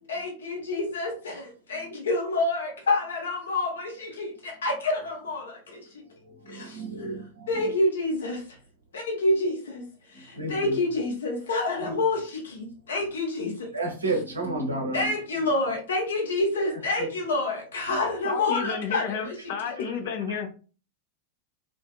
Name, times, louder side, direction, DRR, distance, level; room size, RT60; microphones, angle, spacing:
voice 1, 0.1-5.9 6.5-7.2 7.5-8.4 8.9-9.8 10.1-13.7 14.9-19.3, left 2 dB, 65° left, 0.8 m, -28 dB
voice 2, 6.4-7.7 10.4-10.8 11.8-11.9 13.7-15.1 17.0-17.1 17.9-18.0 19.9-20.0 20.3-20.4, right 2 dB, 75° right, 0.7 m, -32 dB
voice 3, 18.2-20.5, left 7 dB, 50° left, 0.4 m, -31 dB
2.5 x 2.4 x 2.4 m
figure-of-eight pair, 90°, 0 cm